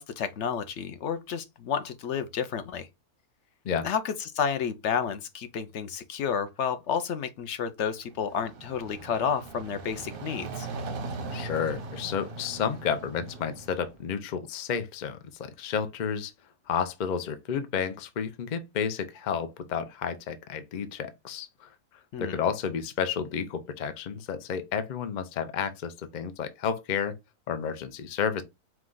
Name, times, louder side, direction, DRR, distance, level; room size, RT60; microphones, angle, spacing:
voice 1, 0.0-2.9 3.8-10.7 22.1-22.3, left 7 dB, 65° left, 0.7 m, -31 dB
sound 1, 8.0-14.0, right 3 dB, 50° right, 0.7 m, -39 dB
voice 2, 11.3-16.3 16.7-21.7 22.2-27.1 27.5-28.4, left 7 dB, 85° left, 0.4 m, -31 dB
4.9 x 2.3 x 3.8 m
omnidirectional pair, 1.6 m